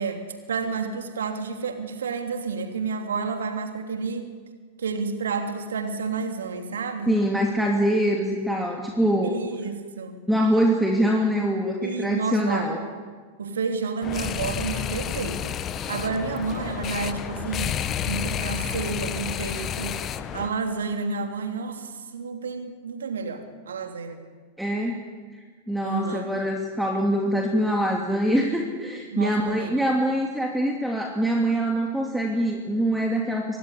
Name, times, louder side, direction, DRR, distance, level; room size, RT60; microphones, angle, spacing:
voice 1, 0.0-4.3 4.8-7.2 9.2-10.2 11.8-12.8 13.4-15.4 15.9-17.8 18.1-20.0 20.3-24.2 25.8-26.3 29.1-29.7, right 4 dB, 65° right, 5 dB, 3.1 m, -30 dB
voice 2, 7.1-9.3 10.3-12.8 24.6-25.0 25.7-33.6, equal, ahead, 1 dB, 2.6 m, -24 dB
sound 1, 14.0-20.5, left 9 dB, 30° left, 1.2 m, -30 dB
24.0 x 18.5 x 9.7 m, 1.5 s
figure-of-eight pair, 90°, 0 cm